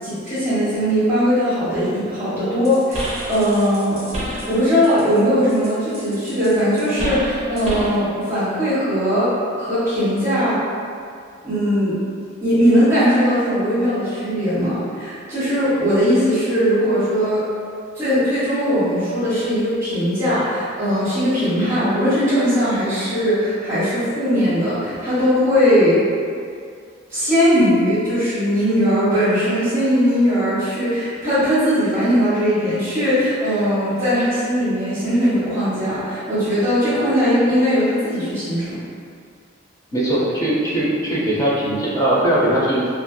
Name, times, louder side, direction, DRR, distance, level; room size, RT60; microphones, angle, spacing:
voice 1, 0.0-9.3 9.5-10.6 11.4-12.0 12.4-17.4 17.9-26.0 27.1-38.8, equal, 15° right, -16 dB, 1.2 m, -19 dB
sound 1, 2.6-5.2 5.5-8.0, equal, 35° right, 0.7 m, -29 dB
voice 2, 39.9-42.9, right 1 dB, 15° left, -7 dB, 0.5 m, -20 dB
2.8 x 2.4 x 2.2 m, 2.2 s
head